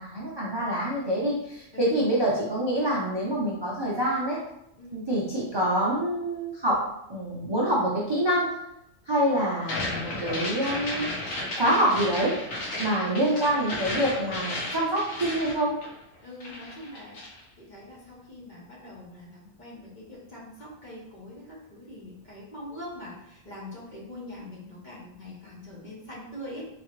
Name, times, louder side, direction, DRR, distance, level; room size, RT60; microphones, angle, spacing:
voice 1, 0.0-4.4 4.9-8.5 9.1-11.1 11.5-12.4 12.8-15.8, right 1 dB, 40° right, -5 dB, 0.4 m, -26 dB
voice 2, 1.7-2.0 4.8-5.0 16.2-26.6, left 1 dB, 40° left, -5 dB, 1.0 m, -43 dB
sound 1, 9.6-16.2 16.4-17.4, left 1 dB, 60° left, 1.2 m, -34 dB
3.6 x 2.9 x 3.0 m, 0.82 s
omnidirectional pair, 1.4 m